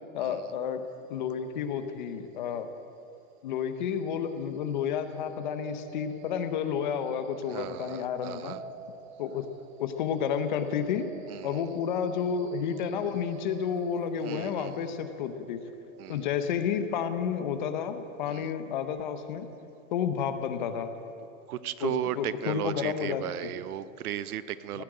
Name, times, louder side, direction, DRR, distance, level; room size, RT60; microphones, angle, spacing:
voice 1, 0.1-0.8 1.1-2.7 3.4-8.6 9.2-9.5 9.8-11.1 11.4-15.6 16.1-19.5 19.9-20.9 21.8-23.5 24.7-24.8, left 7 dB, 35° left, 9 dB, 0.7 m, -31 dB
sound 1, 4.7-18.7, right 5 dB, 50° right, 1.1 m, -48 dB
voice 2, 7.5-8.6 11.3-11.7 14.2-14.9 16.0-16.2 18.3-18.5 21.5-24.8, right 11 dB, 90° right, 15 dB, 0.8 m, -36 dB
17.0 x 7.6 x 8.8 m, 2.6 s
supercardioid pair, 175°, 43 cm